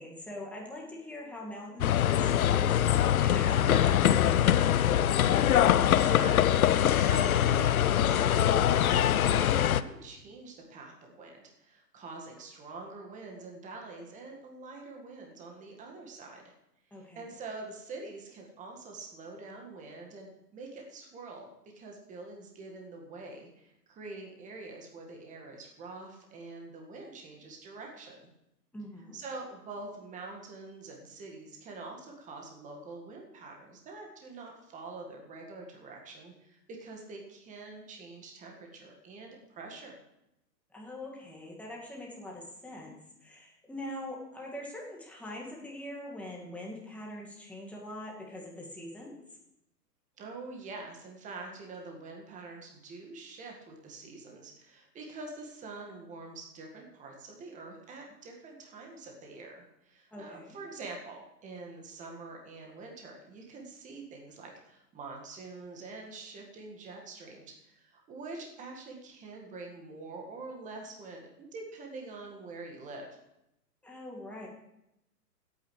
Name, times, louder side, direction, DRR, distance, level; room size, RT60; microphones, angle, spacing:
voice 1, 0.0-5.3 16.9-17.3 28.7-29.2 40.7-42.9 43.2-49.2 60.1-60.6 73.8-74.5, left 1 dB, 5° left, -3 dB, 2.0 m, -43 dB
sound 1, 1.8-9.8, left 10 dB, 60° left, 0.6 m, -23 dB
voice 2, 5.9-16.5 17.0-21.5 21.8-28.3 29.1-40.0 50.2-73.1, right 3 dB, 15° right, 1 dB, 1.8 m, -45 dB
26.0 x 9.2 x 3.3 m, 0.86 s
figure-of-eight pair, 125°, 49 cm